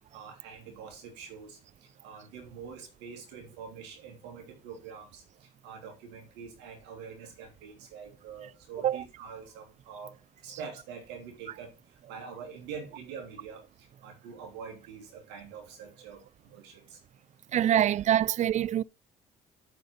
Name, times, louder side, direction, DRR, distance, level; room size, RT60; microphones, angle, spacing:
voice 1, 0.1-1.6 2.0-5.2 5.6-10.1 10.4-11.7 12.1-13.6 14.0-16.2 16.5-17.0, right 6 dB, 80° right, 3.1 m, -45 dB
voice 2, 17.5-18.8, right 11 dB, 45° right, 0.4 m, -25 dB
8.0 x 4.9 x 6.5 m
supercardioid pair, 65°, 17 cm